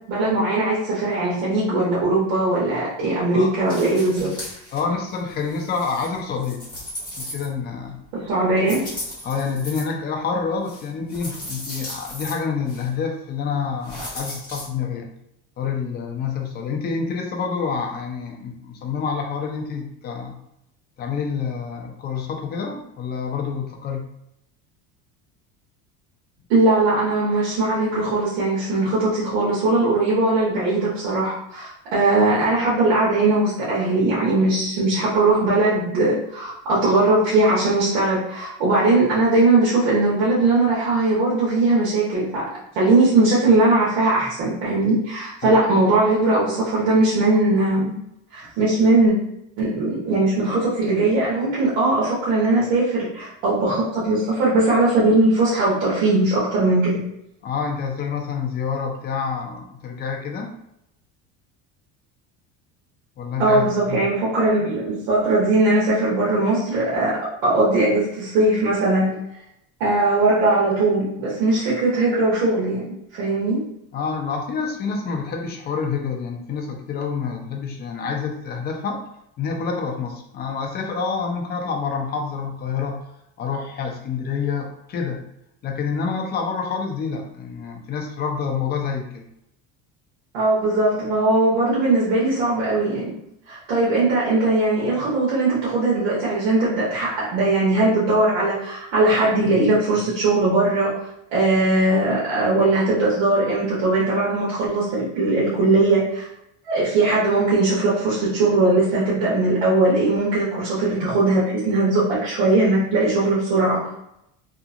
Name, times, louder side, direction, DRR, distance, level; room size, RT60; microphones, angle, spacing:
voice 1, 0.1-4.3 8.1-8.9 26.5-42.4 42.7-47.9 48.3-49.1 49.6-57.0 63.4-69.2 69.8-73.6 90.3-93.2 93.5-100.9 101.3-106.3 106.7-113.8, right 2 dB, 80° right, -8 dB, 1.0 m, -20 dB
sound 1, 3.7-4.8 5.1-7.8 8.6-9.8 10.6-12.3 12.7-12.9 13.8-14.7, left 1 dB, 15° left, 1.4 m, -36 dB
voice 2, 4.7-6.6 7.2-8.0 9.2-15.1 15.6-20.4 21.0-24.0 45.4-45.5 57.4-60.5 63.2-64.0 73.9-79.0 79.4-83.0 83.4-85.2 85.6-89.3, left 5 dB, 30° left, 2 dB, 0.4 m, -27 dB
2.8 x 2.5 x 2.4 m, 0.79 s
cardioid pair, 155°, 34 cm